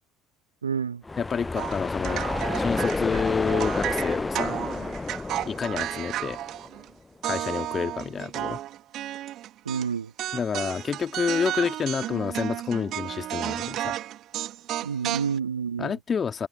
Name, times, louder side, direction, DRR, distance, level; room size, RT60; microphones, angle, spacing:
voice 1, 0.6-1.0 9.6-10.1 14.8-16.0, right 6 dB, 80° right, 1.1 m, -29 dB
sound 1, 1.0-6.8, left 3 dB, 15° left, 0.7 m, -30 dB
voice 2, 1.2-2.3 2.6-4.5 5.5-6.4 7.2-8.6 10.3-14.0 15.8-16.5, left 6 dB, 30° left, 2.2 m, -29 dB
sound 2, 1.6-6.9 7.2-9.9 10.2-15.4, right 13 dB, 50° right, 2.4 m, -33 dB
open air
figure-of-eight pair, 55°, 0 cm